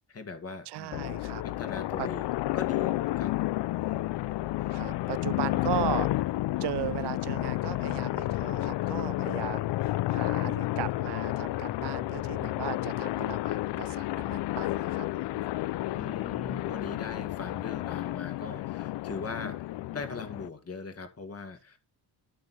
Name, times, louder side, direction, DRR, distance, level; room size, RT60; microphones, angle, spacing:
voice 1, 0.0-1.0 1.4-3.3 3.8-4.0 15.9-19.6 19.9-21.8, left 4 dB, 35° left, 2.2 m, -40 dB
voice 2, 0.7-1.4 2.0-2.1 4.7-6.1 6.6-15.4 17.1-17.2, right 16 dB, 75° right, 0.5 m, -37 dB
sound 1, 0.9-20.5, left 17 dB, 85° left, 0.5 m, -31 dB
11.0 x 6.7 x 4.2 m
cardioid pair, 135°, 41 cm